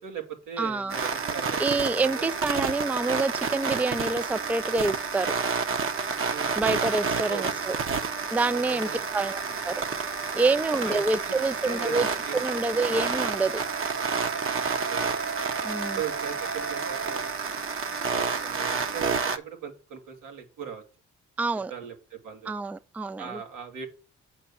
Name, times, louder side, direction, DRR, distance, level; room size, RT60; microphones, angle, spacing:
voice 1, 0.0-2.3 6.3-6.8 7.3-7.5 8.5-9.0 9.4-9.6 10.8-11.2 11.6-12.4 12.7-13.1 14.5-15.2 16.0-17.3 18.0-20.8 21.7-22.6 23.2-23.9, right 8 dB, 85° right, 2.4 m, -39 dB
voice 2, 0.6-1.0 1.6-5.3 6.6-7.8 8.3-9.8 10.3-12.1 12.3-13.6 15.6-16.0 21.4-21.7 22.5-23.2, right 3 dB, 5° right, 0.4 m, -27 dB
sound 1, 0.9-19.4, right 5 dB, 45° right, 1.1 m, -30 dB
Wind instrument woodwind instrument, 12.7-17.4, right 5 dB, 65° right, 2.3 m, -37 dB
8.3 x 4.4 x 7.0 m
cardioid pair, 90°, 30 cm